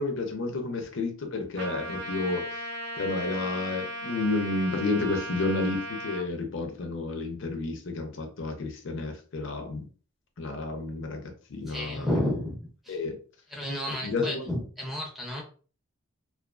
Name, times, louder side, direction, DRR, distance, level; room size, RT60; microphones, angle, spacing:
voice 1, 0.0-2.4 3.0-9.9 10.4-12.1 12.9-13.2 14.0-14.5, left 3 dB, 60° left, 5 dB, 0.5 m, -31 dB
Trumpet, 1.6-6.2, right 1 dB, 50° right, 0.4 m, -37 dB
voice 2, 11.7-13.0 13.5-15.4, left 1 dB, ahead, -2 dB, 0.5 m, -31 dB
2.3 x 2.3 x 2.3 m, 0.39 s
head